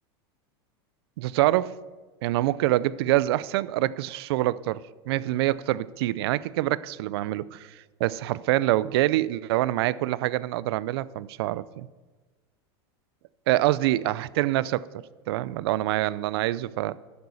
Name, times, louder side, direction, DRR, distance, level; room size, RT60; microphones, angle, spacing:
voice 1, 1.2-1.8 2.2-11.9 13.5-14.9 15.3-17.0, right 15 dB, 70° right, 0.5 m, -25 dB
11.0 x 9.5 x 7.0 m
supercardioid pair, 120°, 14 cm